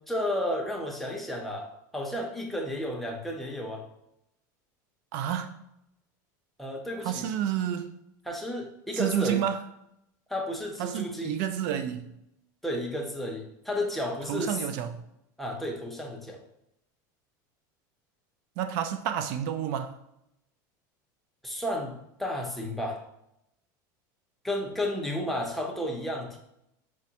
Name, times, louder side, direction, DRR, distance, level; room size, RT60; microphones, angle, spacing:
voice 1, 0.1-3.9 6.6-7.3 8.2-9.4 10.3-11.3 12.6-14.6 15.4-16.4 21.4-23.0 24.4-26.4, left 1 dB, ahead, 0.7 m, -32 dB
voice 2, 5.1-5.7 7.0-8.0 8.9-9.6 10.8-12.1 14.3-15.0 18.6-20.0, right 9 dB, 70° right, 0.4 m, -30 dB
6.1 x 2.1 x 2.8 m
supercardioid pair, 125°, 10 cm